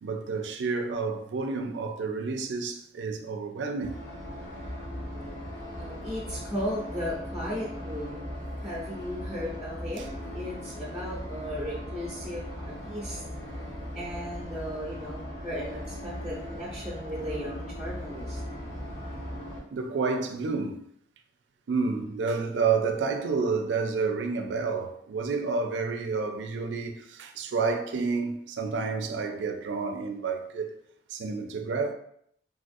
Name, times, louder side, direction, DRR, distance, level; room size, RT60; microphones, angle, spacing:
voice 1, 0.0-3.9 10.0-10.1 19.7-20.8 21.7-30.7 31.1-31.9, right 4 dB, 80° right, 0.4 m, -29 dB
sound 1, 3.8-19.6, equal, 85° left, 1.2 m, -38 dB
voice 2, 5.8-8.3 8.6-10.1 10.3-13.2 13.9-18.4, equal, 5° right, 0.6 m, -36 dB
3.4 x 2.4 x 2.5 m
head